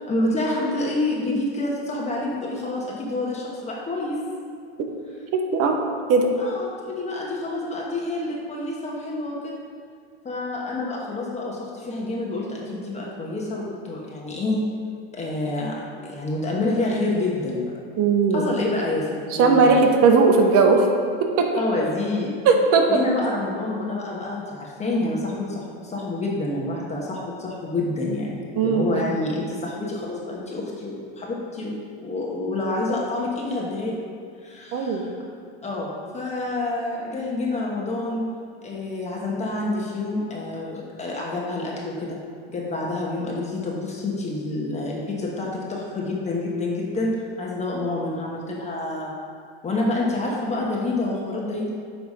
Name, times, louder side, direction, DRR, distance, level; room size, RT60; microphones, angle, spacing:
voice 1, 0.0-4.2 6.4-9.6 10.2-14.6 15.1-17.6 18.3-19.8 21.6-22.3 22.9-31.8 32.0-34.0 34.4-35.1 35.6-38.3 38.6-42.2 42.5-49.1 49.6-51.7, left 2 dB, 20° left, -3 dB, 1.2 m, -28 dB
voice 2, 5.3-5.8 6.1-6.3 18.0-18.5 19.4-20.9 21.2-21.5 22.4-23.0 28.6-29.0 34.7-35.0, right 4 dB, 50° right, 3 dB, 1.0 m, -18 dB
8.6 x 3.4 x 5.4 m, 2.3 s
supercardioid pair, 110°, 30 cm